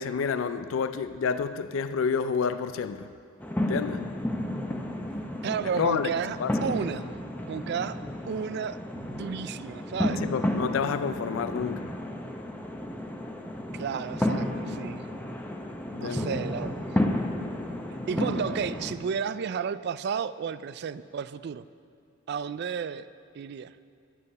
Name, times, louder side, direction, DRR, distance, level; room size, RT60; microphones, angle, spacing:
voice 1, 0.0-3.1 3.6-4.1 5.8-6.1 6.4-6.5 10.3-12.0 15.9-16.3, left 6 dB, 75° left, 0.4 m, -29 dB
sound 1, 3.4-18.9, left 1 dB, 10° left, 0.7 m, -32 dB
voice 2, 5.4-7.1 7.5-8.0 8.3-10.2 13.7-15.1 16.0-17.0 18.1-21.7 22.3-23.1 23.3-23.7, right 6 dB, 55° right, 0.3 m, -32 dB
12.0 x 9.7 x 5.4 m
head